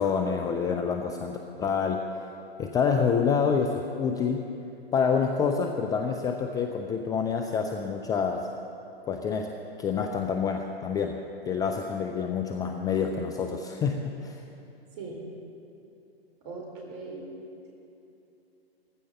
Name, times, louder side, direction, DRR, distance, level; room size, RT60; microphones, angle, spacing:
voice 1, 0.0-2.0 2.6-4.5 4.9-8.5 9.1-9.5 9.8-11.2 11.5-14.4, left 6 dB, 10° left, 4 dB, 0.5 m, -27 dB
voice 2, 16.4-17.3, right 3 dB, 40° right, 0 dB, 3.9 m, -39 dB
19.0 x 15.0 x 4.2 m, 2.8 s
figure-of-eight pair, 115°, 31 cm